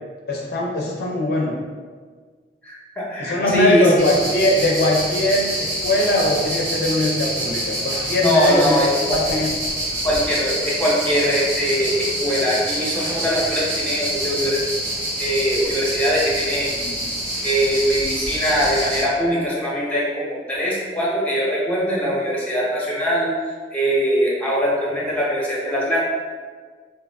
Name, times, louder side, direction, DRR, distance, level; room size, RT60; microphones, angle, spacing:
voice 1, 0.3-1.6 3.2-8.9 9.1-9.5, left 1 dB, 60° left, -2 dB, 0.4 m, -21 dB
voice 2, 2.6-3.9 8.2-9.2 10.0-14.6 15.2-16.9 17.4-23.3 23.7-26.0, equal, 10° left, -5 dB, 0.7 m, -22 dB
sound 1, 4.0-19.1, right 1 dB, 75° right, 0.9 m, -26 dB
2.8 x 2.3 x 3.3 m, 1.6 s
head